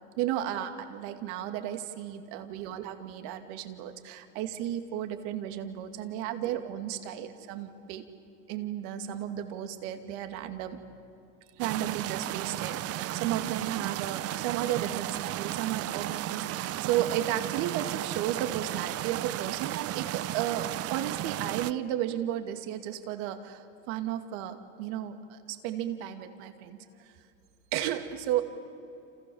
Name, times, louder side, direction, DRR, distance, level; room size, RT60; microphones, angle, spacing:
voice 1, 0.2-8.1 8.5-10.8 11.6-27.1 27.7-28.4, right 11 dB, 65° right, 7 dB, 2.6 m, -34 dB
sound 1, 11.6-21.7, right 14 dB, 40° right, 0.7 m, -34 dB
29.5 x 28.0 x 7.2 m, 2.7 s
supercardioid pair, 110°, 39 cm